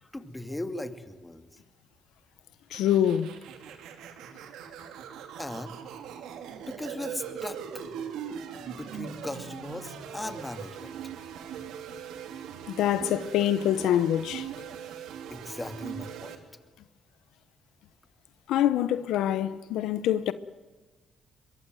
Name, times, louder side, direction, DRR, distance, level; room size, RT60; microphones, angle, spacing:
voice 1, 0.0-1.5 5.4-5.8 6.6-7.8 8.6-11.0 15.3-16.4, left 1 dB, 10° left, 2.4 m, -38 dB
voice 2, 2.7-3.3 12.7-14.5 18.5-20.3, left 11 dB, 85° left, 1.0 m, -25 dB
sound 1, 2.7-16.3, right 8 dB, 85° right, 2.9 m, -41 dB
23.5 x 22.5 x 9.2 m
cardioid pair, 90°, 0 cm